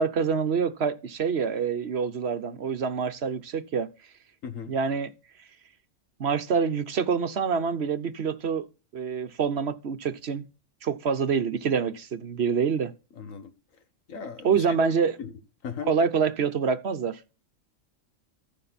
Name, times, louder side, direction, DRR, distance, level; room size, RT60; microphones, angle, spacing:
voice 1, 0.0-3.9 4.7-5.1 6.2-8.6 8.9-10.4 10.8-12.9 14.4-15.2 15.9-17.2, right 6 dB, 55° right, 1.0 m, -26 dB
voice 2, 4.4-4.7 13.2-13.5 14.1-14.9 15.2-15.3 15.6-15.9, left 6 dB, 75° left, 1.7 m, -37 dB
14.5 x 6.5 x 4.1 m
omnidirectional pair, 1.4 m